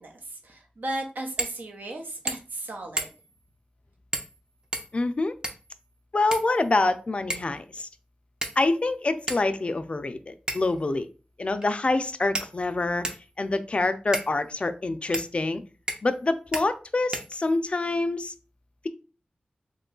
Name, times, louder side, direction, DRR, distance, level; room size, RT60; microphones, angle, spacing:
voice 1, 0.0-3.1, right 1 dB, 75° right, 1 dB, 0.9 m, -35 dB
sound 1, 1.4-1.6 1.9-2.0 2.3-2.6 3.0-3.4 4.1-4.4 4.7-5.7 6.3-6.9 7.3-7.6 8.4-8.8 9.3-9.4 10.5-10.8 11.6-11.7 12.3-13.3 14.1-14.3 15.1-15.3 15.9-16.2 16.5-16.7 17.1-17.7, right 1 dB, 25° right, 0.6 m, -33 dB
voice 2, 4.9-5.3 6.1-7.9 8.6-11.1 11.4-13.1 13.4-15.6 16.0-18.3, left 2 dB, 40° left, 10 dB, 0.4 m, -26 dB
3.0 x 2.3 x 3.7 m, 0.34 s
wide cardioid pair, 80°, 3 cm